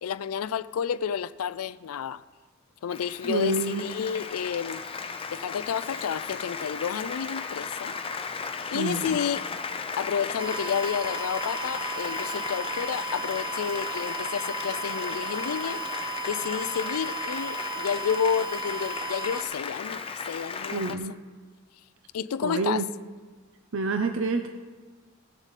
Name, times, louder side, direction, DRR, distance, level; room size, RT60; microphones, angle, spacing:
voice 1, 0.0-2.2 2.8-4.8 5.3-8.0 8.7-9.5 10.0-15.8 16.3-21.0 22.1-22.8, left 7 dB, 90° left, 17 dB, 0.4 m, -30 dB
Applause, 2.9-20.9, left 5 dB, 25° left, 0.5 m, -35 dB
voice 2, 3.3-3.8 8.7-9.2 20.7-21.1 22.4-22.9 23.7-24.5, right 3 dB, 65° right, 6 dB, 0.7 m, -27 dB
sound 1, 10.4-19.4, right 5 dB, 25° right, 0.6 m, -36 dB
18.0 x 7.1 x 4.1 m, 1.4 s
head